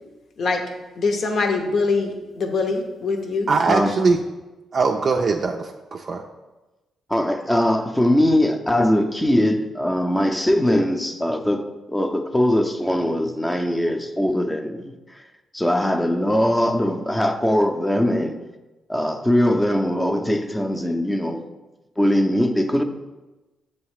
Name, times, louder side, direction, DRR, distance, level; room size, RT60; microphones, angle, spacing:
voice 1, 0.4-0.7 1.0-3.5, left 4 dB, 60° left, 5 dB, 0.8 m, -23 dB
voice 2, 3.5-4.2 4.7-6.2, right 4 dB, 45° right, 3 dB, 0.4 m, -21 dB
voice 3, 7.1-15.2 15.5-18.4 18.9-21.4 22.0-22.8, left 1 dB, 10° left, 6 dB, 0.6 m, -21 dB
6.9 x 3.2 x 4.8 m, 1.1 s
cardioid pair, 80°, 0 cm